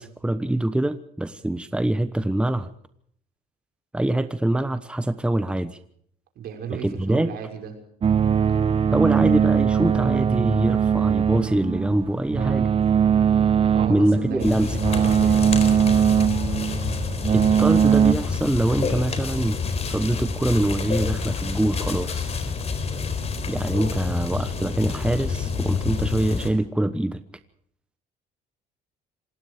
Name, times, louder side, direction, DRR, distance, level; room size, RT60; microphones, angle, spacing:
voice 1, 0.0-2.7 3.9-5.8 6.7-7.4 8.9-12.7 13.9-14.8 17.3-19.6 19.9-22.4 23.5-27.2, right 1 dB, 5° right, 11 dB, 1.1 m, -24 dB
voice 2, 6.4-7.7 13.7-15.5, right 7 dB, 65° right, 4 dB, 6.1 m, -34 dB
sound 1, 8.0-18.1, right 8 dB, 35° right, 1.0 m, -21 dB
sound 2, 14.4-26.5, left 5 dB, 40° left, 4.1 m, -28 dB
27.0 x 19.0 x 5.0 m, 0.66 s
cardioid pair, 110°, 17 cm